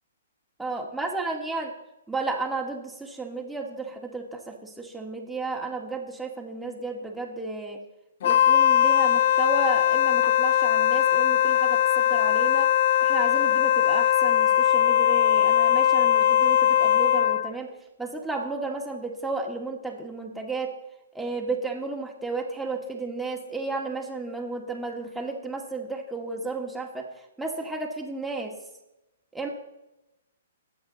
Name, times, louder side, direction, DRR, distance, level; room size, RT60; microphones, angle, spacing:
voice 1, 0.6-1.7 2.1-7.8 8.2-12.7 13.0-17.7 18.0-20.7 21.1-27.1 27.4-28.5 29.3-29.5, right 3 dB, 5° right, -1 dB, 2.1 m, -33 dB
Wind instrument woodwind instrument, 8.2-17.5, left 11 dB, 60° left, 0.3 m, -20 dB
22.0 x 8.1 x 4.1 m, 0.95 s
hypercardioid pair, 135°, 0 cm